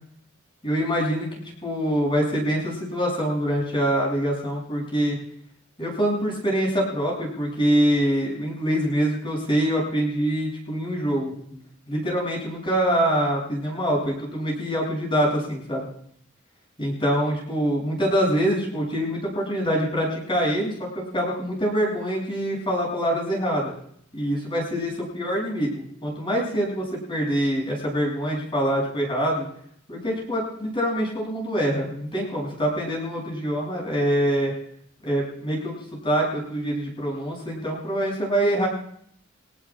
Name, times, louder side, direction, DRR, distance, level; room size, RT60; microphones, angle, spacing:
voice 1, 0.6-5.2 5.8-11.6 11.9-15.9 16.8-23.7 24.1-29.5 29.9-34.5 35.0-35.7 36.0-38.7, equal, 25° left, -3 dB, 7.9 m, -25 dB
23.5 x 18.0 x 2.5 m, 0.66 s
head